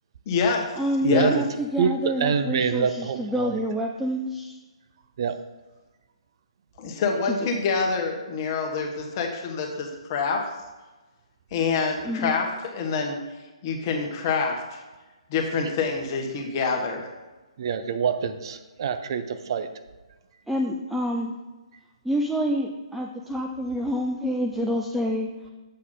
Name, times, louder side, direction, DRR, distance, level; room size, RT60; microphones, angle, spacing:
voice 1, 0.3-0.7 1.0-1.3 6.8-10.4 11.5-13.2 13.6-14.8 15.3-17.1, left 5 dB, 35° left, 2 dB, 1.3 m, -26 dB
voice 2, 0.8-4.6 7.2-7.5 12.0-12.4 20.5-21.4 22.0-25.3, equal, 5° right, 0 dB, 0.4 m, -27 dB
voice 3, 2.2-3.6 5.2-5.3 17.6-19.2 19.5-19.7, right 6 dB, 45° right, 10 dB, 0.6 m, -25 dB
7.8 x 6.2 x 3.9 m, 1.2 s
figure-of-eight pair, 135°, 3 cm